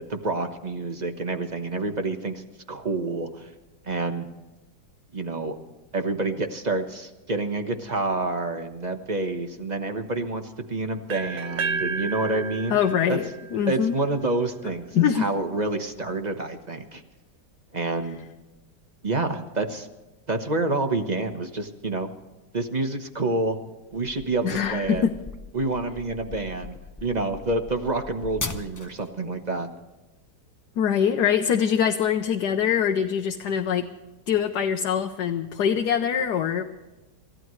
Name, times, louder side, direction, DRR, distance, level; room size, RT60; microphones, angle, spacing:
voice 1, 0.0-2.4 2.7-3.5 3.8-4.3 5.1-5.5 5.9-12.8 13.1-13.2 13.7-17.0 17.7-18.2 19.0-19.9 20.3-22.1 22.5-23.6 23.9-25.1 25.5-29.7, right 2 dB, 30° right, 6 dB, 1.1 m, -28 dB
sound 1, 11.1-15.0, right 4 dB, 55° right, 0.8 m, -33 dB
voice 2, 12.7-13.9 14.9-15.3 24.4-25.1 30.8-33.9 34.3-36.6, left 8 dB, 75° left, 4 dB, 1.4 m, -23 dB
sound 2, 23.9-29.1, left 3 dB, 20° left, 0.5 m, -38 dB
28.0 x 15.0 x 3.2 m, 1.1 s
omnidirectional pair, 1.8 m